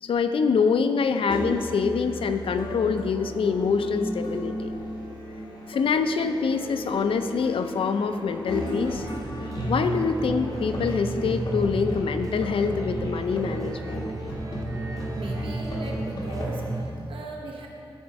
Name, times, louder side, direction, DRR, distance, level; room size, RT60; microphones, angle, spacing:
voice 1, 0.0-4.7 5.7-9.1 9.7-14.0, left 5 dB, 85° left, 9 dB, 0.4 m, -25 dB
Musical instrument, 1.3-16.8, right 1 dB, 55° left, 1.7 m, -33 dB
sound 1, 8.6-17.0, right 2 dB, 40° right, 0.5 m, -43 dB
voice 2, 15.2-17.7, right 3 dB, 80° right, 0 dB, 0.9 m, -38 dB
12.5 x 4.4 x 4.7 m, 2.7 s
wide cardioid pair, 140°, 9 cm